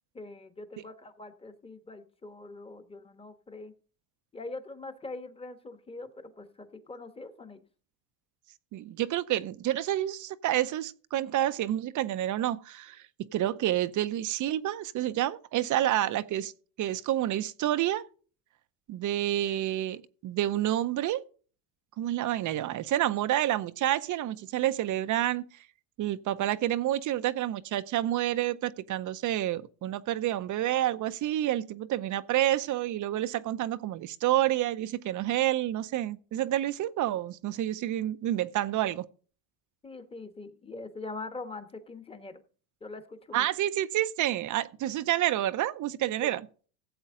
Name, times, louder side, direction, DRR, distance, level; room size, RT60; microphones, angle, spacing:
voice 1, 0.1-3.7 4.3-7.6 39.8-42.4 42.8-43.5 46.2-46.3, left 3 dB, 10° left, 1.2 m, -43 dB
voice 2, 8.7-13.0 13.3-16.5 16.8-18.0 18.9-21.2 22.0-25.5 26.0-39.0 43.3-46.4, right 13 dB, 40° right, 0.7 m, -29 dB
15.5 x 7.9 x 3.8 m
cardioid pair, 125°, 45 cm